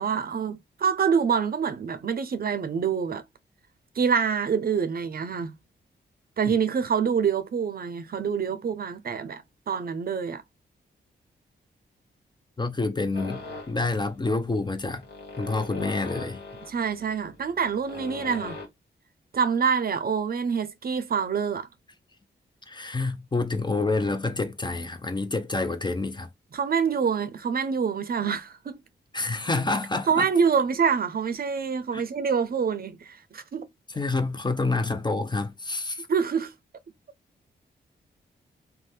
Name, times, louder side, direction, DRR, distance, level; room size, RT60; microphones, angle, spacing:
voice 1, 0.0-3.2 4.0-5.5 6.4-10.4 16.7-18.6 19.3-21.7 26.5-28.8 30.1-33.6 36.1-36.5, right 6 dB, 50° right, 0.6 m, -26 dB
voice 2, 12.6-15.0 15.4-16.4 22.7-26.3 29.1-30.3 31.9-32.0 34.0-36.0, left 3 dB, 25° left, 0.5 m, -28 dB
sound 1, 13.1-18.7, left 3 dB, 60° left, 1.3 m, -40 dB
2.6 x 2.1 x 3.3 m
cardioid pair, 55°, 19 cm